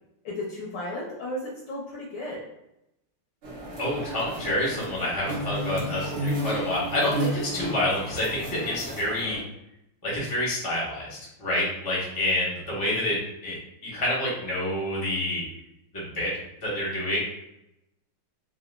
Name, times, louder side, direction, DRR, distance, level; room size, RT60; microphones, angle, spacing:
voice 1, 0.2-2.4, left 1 dB, 65° left, -4 dB, 1.1 m, -34 dB
sound 1, 3.4-9.4, right 1 dB, 60° right, 1.3 m, -32 dB
voice 2, 3.8-9.4 10.0-13.2 13.4-13.6 13.8-15.4 15.9-16.3 16.6-17.2, left 1 dB, 20° left, -6 dB, 0.6 m, -28 dB
4.0 x 2.4 x 2.3 m, 0.85 s
omnidirectional pair, 2.3 m